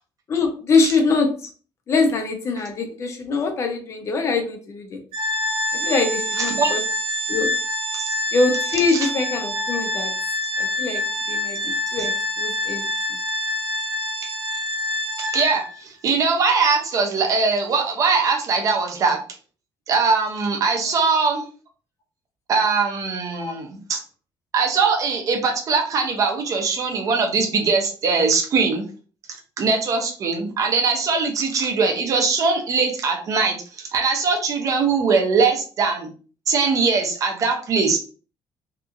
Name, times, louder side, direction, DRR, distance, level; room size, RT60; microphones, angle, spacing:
voice 1, 0.3-1.3 1.9-5.0 5.7-6.8 7.3-7.5 8.3-10.1 10.6-11.0 11.3-11.6 11.9-12.1 12.4-12.9 23.3-23.5, left 4 dB, 30° left, 5 dB, 0.5 m, -23 dB
Organ, 5.1-15.8, left 1 dB, 80° right, 0.7 m, -26 dB
voice 2, 6.4-6.7 8.9-9.0 15.2-19.2 19.9-21.4 22.5-24.0 24.5-28.8 29.6-33.6 33.9-36.1 36.5-38.0, right 4 dB, 35° right, 2 dB, 0.6 m, -21 dB
2.8 x 2.5 x 2.4 m, 0.38 s
cardioid pair, 180°, 9 cm